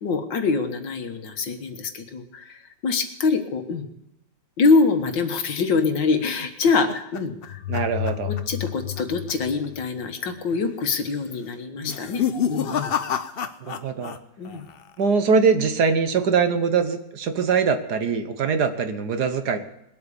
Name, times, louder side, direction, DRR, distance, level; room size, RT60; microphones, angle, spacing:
voice 1, 0.0-3.9 4.6-7.6 8.5-12.2 12.5-12.9 14.4-14.6, left 4 dB, 85° left, 6 dB, 2.2 m, -24 dB
sound 1, 6.2-8.7 9.0-9.3 9.6-9.7 10.5-10.9 11.8-14.2 14.4-15.0, left 7 dB, 55° left, 0.6 m, -29 dB
sound 2, 7.5-10.4, left 14 dB, 70° left, 1.2 m, -32 dB
voice 2, 7.7-8.3 13.6-14.2 15.0-19.6, right 5 dB, 65° right, 8 dB, 1.7 m, -22 dB
21.0 x 8.6 x 7.1 m, 0.81 s
omnidirectional pair, 1.9 m